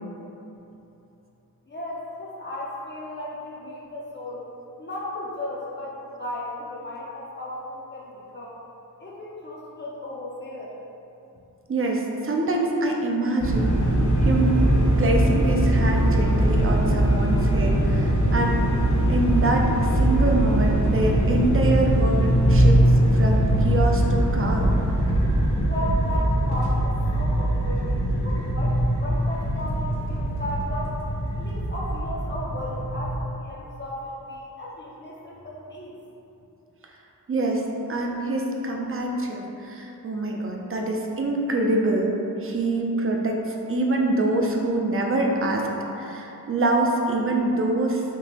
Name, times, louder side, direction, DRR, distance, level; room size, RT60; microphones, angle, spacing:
voice 1, 1.7-4.4 4.8-8.5 9.0-10.7 25.6-31.0 31.3-36.0, left 1 dB, 30° left, -6 dB, 0.5 m, -35 dB
voice 2, 11.7-13.7 14.2-14.6 15.0-18.7 19.1-22.8 23.1-24.8 37.3-37.6 37.9-42.1 42.4-43.4 43.7-45.7 45.9-48.0, right 2 dB, 40° right, 0 dB, 0.4 m, -25 dB
sound 1, 13.4-33.2, right 1 dB, 50° left, 0.9 m, -21 dB
3.7 x 2.8 x 2.9 m, 2.9 s
wide cardioid pair, 90°, 36 cm